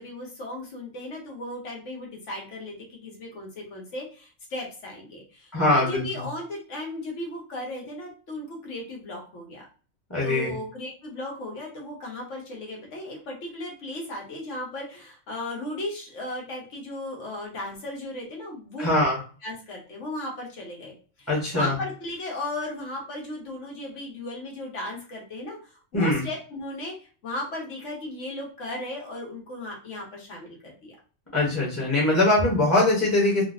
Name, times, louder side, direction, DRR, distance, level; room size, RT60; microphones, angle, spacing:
voice 1, 0.0-9.6 10.2-18.9 19.4-30.9, left 1 dB, 80° left, -1 dB, 1.4 m, -36 dB
voice 2, 5.5-6.2 10.1-10.5 18.8-19.2 21.3-21.7 25.9-26.2 31.3-33.4, left 2 dB, 15° left, -5 dB, 0.8 m, -22 dB
3.7 x 2.0 x 2.5 m, 0.39 s
omnidirectional pair, 1.2 m